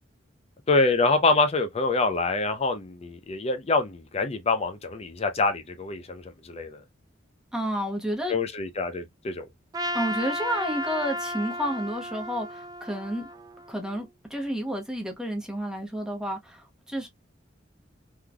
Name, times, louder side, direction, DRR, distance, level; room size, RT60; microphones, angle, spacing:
voice 1, 0.7-6.8 8.3-9.5, left 3 dB, 35° left, 0.5 m, -25 dB
voice 2, 7.5-8.3 9.9-13.3 13.7-17.1, equal, 5° right, 1.0 m, -31 dB
Trumpet, 9.7-14.0, left 1 dB, 20° right, 0.4 m, -34 dB
3.7 x 3.1 x 2.2 m
head